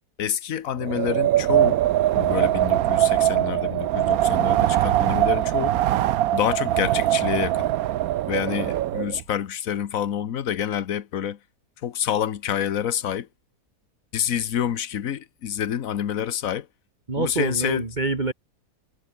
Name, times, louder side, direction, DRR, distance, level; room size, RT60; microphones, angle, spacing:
voice 1, 0.2-1.8 2.1-5.8 6.3-7.7 8.3-11.4 11.8-13.3 14.1-16.7 17.2-17.8, left 9 dB, 60° left, 1.4 m, -27 dB
Wind, 0.8-9.2, right 13 dB, 70° right, 1.1 m, -22 dB
voice 2, 17.1-18.3, right 3 dB, 30° right, 2.1 m, -26 dB
omnidirectional pair, 1.7 m